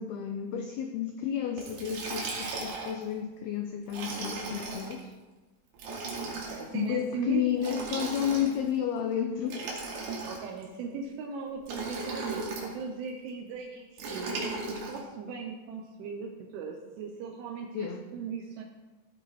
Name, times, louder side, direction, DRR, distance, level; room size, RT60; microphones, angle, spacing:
voice 1, 0.0-5.1 6.7-9.6 17.7-18.1, left 9 dB, 85° left, 5 dB, 2.2 m, -31 dB
Liquid, 1.6-3.0 3.9-4.9 5.7-6.7 7.6-8.7 9.4-10.6 11.6-12.7 14.0-15.0, right 3 dB, 60° right, 4.1 m, -36 dB
voice 2, 6.2-7.5 8.0-8.1 10.3-14.4 14.7-18.6, right 5 dB, 80° right, 1 dB, 3.4 m, -38 dB
16.0 x 9.1 x 4.3 m, 1.2 s
omnidirectional pair, 5.6 m